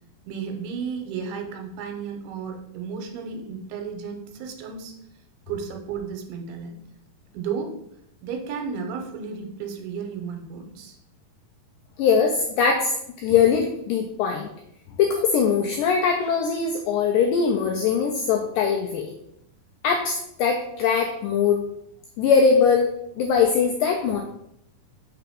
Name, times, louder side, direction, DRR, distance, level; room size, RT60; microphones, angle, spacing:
voice 1, 0.3-5.0 5.5-6.8 7.3-7.8 8.2-11.0, right 6 dB, 85° right, 4 dB, 2.8 m, -33 dB
voice 2, 12.0-12.9 13.2-14.5 15.0-19.1 19.8-21.6 22.2-22.9 23.2-24.2, left 6 dB, 85° left, 2 dB, 1.9 m, -21 dB
5.8 x 3.4 x 5.0 m, 0.76 s
omnidirectional pair, 4.5 m